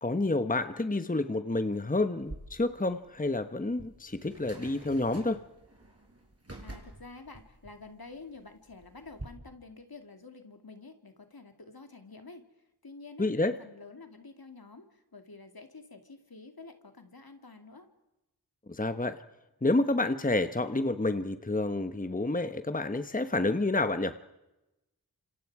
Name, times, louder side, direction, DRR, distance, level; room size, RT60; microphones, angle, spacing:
voice 1, 0.0-5.4 13.2-13.5 18.7-19.2 19.6-24.2, left 2 dB, 20° left, 10 dB, 1.1 m, -29 dB
sound 1, 2.2-9.3, right 1 dB, 40° right, 5.0 m, -48 dB
voice 2, 6.6-12.5 12.8-13.3 13.6-17.9, left 3 dB, 65° left, 6 dB, 2.5 m, -49 dB
29.0 x 26.5 x 4.8 m, 0.96 s
wide cardioid pair, 40°, 39 cm